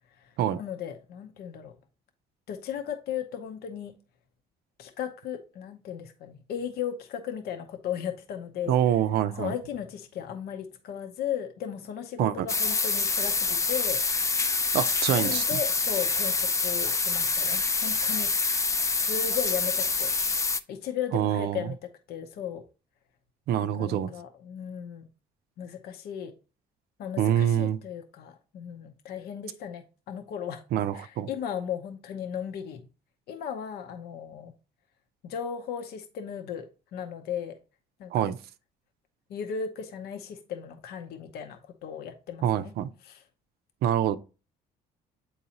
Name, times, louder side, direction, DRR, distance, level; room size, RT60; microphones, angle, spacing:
voice 1, 0.2-1.8 2.5-3.9 4.8-8.8 9.4-14.3 15.1-18.4 19.0-20.1 20.7-22.6 23.6-25.1 25.6-26.3 27.0-30.6 30.9-32.9 33.3-34.5 35.2-37.6 38.0-38.3 39.3-42.7 43.0-43.2, left 8 dB, 70° left, 0.8 m, -36 dB
voice 2, 8.7-9.5 12.2-12.5 14.7-15.6 21.1-21.7 23.5-24.1 27.2-27.8 30.7-31.3 38.1-38.4 42.4-42.9 43.8-44.2, right 10 dB, 70° right, 0.5 m, -25 dB
sound 1, 12.5-20.6, left 4 dB, 20° left, 0.4 m, -26 dB
8.5 x 4.0 x 2.9 m
cardioid pair, 110°, 17 cm